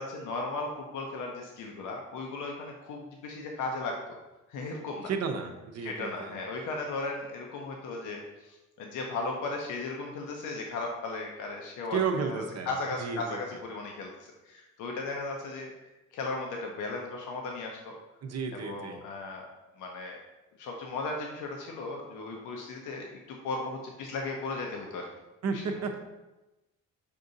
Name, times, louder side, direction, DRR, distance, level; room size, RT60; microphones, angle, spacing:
voice 1, 0.0-4.0 4.5-5.1 5.8-15.7 16.1-17.9 18.6-19.5 19.8-20.2 20.6-25.1 25.5-25.6, left 3 dB, 85° left, 1 dB, 0.7 m, -36 dB
voice 2, 5.0-6.3 11.9-12.7 13.0-13.6 18.2-19.0 25.4-25.9, right 5 dB, 60° right, 4 dB, 0.7 m, -32 dB
5.3 x 2.6 x 3.9 m, 1.0 s
cardioid pair, 90°, 30 cm